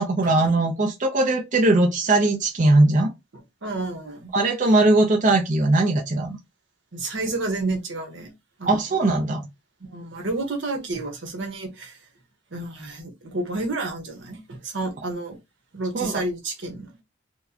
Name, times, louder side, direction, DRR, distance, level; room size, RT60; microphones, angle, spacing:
voice 1, 0.0-3.1 4.3-6.4 8.6-9.4 15.9-16.2, right 2 dB, 40° right, 0.6 m, -20 dB
voice 2, 3.6-4.3 6.9-8.3 8.6-8.8 9.8-12.0 12.5-15.4 15.7-16.9, right 2 dB, 80° right, 1.1 m, -30 dB
4.4 x 2.2 x 2.7 m
head